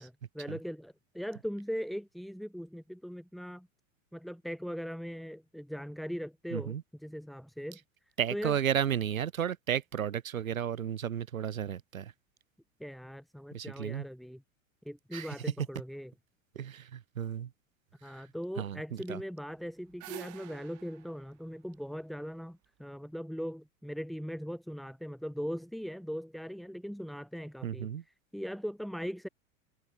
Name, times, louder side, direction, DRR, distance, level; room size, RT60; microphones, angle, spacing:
voice 1, 0.0-3.7 4.1-7.8 8.3-8.6 12.8-14.4 14.8-16.1 18.0-29.3, equal, ahead, 1.1 m, -40 dB
voice 2, 6.5-6.8 8.2-12.1 13.5-14.0 15.1-15.3 16.5-17.5 18.6-18.8 19.1-19.2 27.6-28.0, right 9 dB, 85° right, 1.5 m, -33 dB
sound 1, 19.5-22.7, right 19 dB, 45° right, 6.2 m, -49 dB
hypercardioid pair, 90°, 40 cm